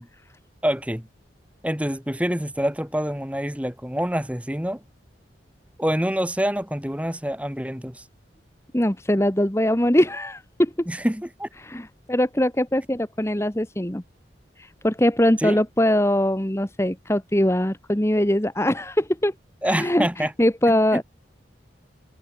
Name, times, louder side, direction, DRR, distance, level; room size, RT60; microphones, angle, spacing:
voice 1, 0.6-1.1 1.6-4.8 5.8-8.0 10.9-11.5 15.4-15.6 19.6-20.3 20.7-21.0, equal, 5° right, 2.6 m, -26 dB
voice 2, 8.7-10.9 11.6-14.0 14.6-19.3 19.6-21.0, left 1 dB, 15° left, 1.3 m, -22 dB
head